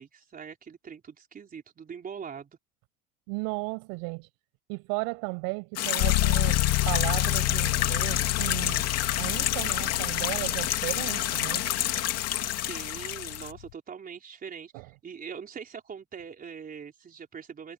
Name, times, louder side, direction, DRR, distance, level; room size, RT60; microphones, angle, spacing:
voice 1, 0.0-2.6 12.6-17.7, right 7 dB, 25° right, 4.3 m, -42 dB
voice 2, 3.3-4.3 4.7-8.9 9.2-11.6 11.9-12.1 14.7-14.9, right 32 dB, 90° right, 7.3 m, -35 dB
sound 1, 5.8-13.5, left 12 dB, 45° left, 2.6 m, -29 dB
sound 2, 6.0-13.7, left 19 dB, 75° left, 3.1 m, -30 dB
cardioid pair, 160°, 35 cm